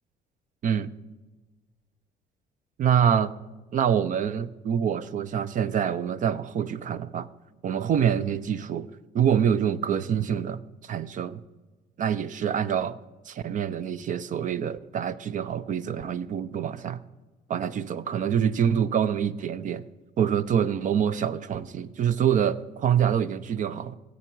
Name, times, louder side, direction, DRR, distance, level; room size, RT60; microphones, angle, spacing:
voice 1, 2.8-3.3 3.7-7.3 7.6-8.9 9.1-11.4 12.0-13.0 13.3-17.0 17.5-19.8 20.2-24.0, right 8 dB, 50° right, 0.6 m, -26 dB
17.5 x 8.3 x 4.6 m
cardioid pair, 110°, 17 cm